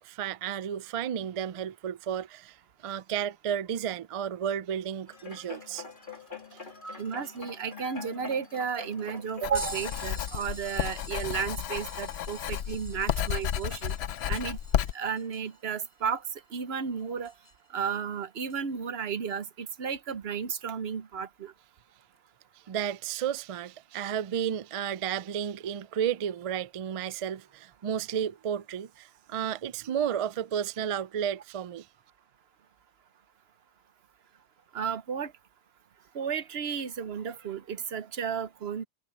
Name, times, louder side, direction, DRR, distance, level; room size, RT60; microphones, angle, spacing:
voice 1, 0.0-2.6 2.8-5.8 6.5-6.6 22.7-31.9, right 9 dB, 55° right, 0.3 m, -32 dB
sound 1, 5.1-11.6 12.2-12.3, left 4 dB, 50° left, 2.6 m, -45 dB
voice 2, 7.0-13.9 14.3-14.6 14.9-16.2 16.5-17.3 17.7-21.5 34.7-35.3 36.1-38.8, right 7 dB, 70° right, 1.1 m, -33 dB
Writing, 9.4-14.9, left 10 dB, 75° left, 0.9 m, -32 dB
sound 2, 9.5-17.7 18.5-18.6 20.9-21.0 22.0-22.2 23.2-23.3, left 1 dB, 20° left, 2.1 m, -47 dB
omnidirectional pair, 1.1 m